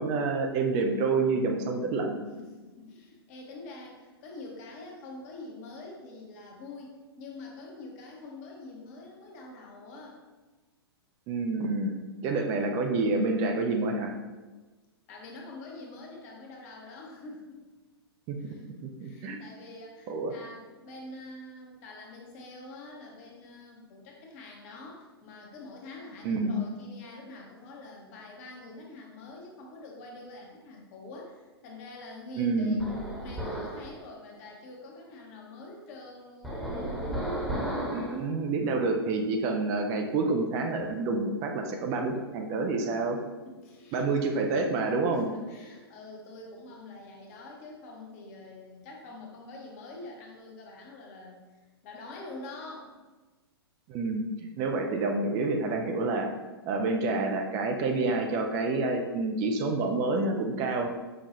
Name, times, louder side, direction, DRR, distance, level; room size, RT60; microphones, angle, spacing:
voice 1, 0.0-2.2 11.3-14.1 18.3-18.5 19.0-19.4 20.1-20.3 26.2-26.6 32.4-32.9 37.9-43.2 43.9-45.3 53.9-56.3 56.7-60.9, right 3 dB, 25° right, 3 dB, 0.3 m, -28 dB
voice 2, 2.4-10.2 15.1-17.6 18.4-18.7 19.0-32.8 33.1-36.8 38.1-38.4 43.5-44.0 45.1-51.5 51.8-53.0, left 2 dB, 35° left, -1 dB, 0.8 m, -45 dB
sound 1, 32.8-33.9 36.4-38.2, right 1 dB, ahead, 0.9 m, -33 dB
5.5 x 2.3 x 2.8 m, 1.2 s
figure-of-eight pair, 105°, 13 cm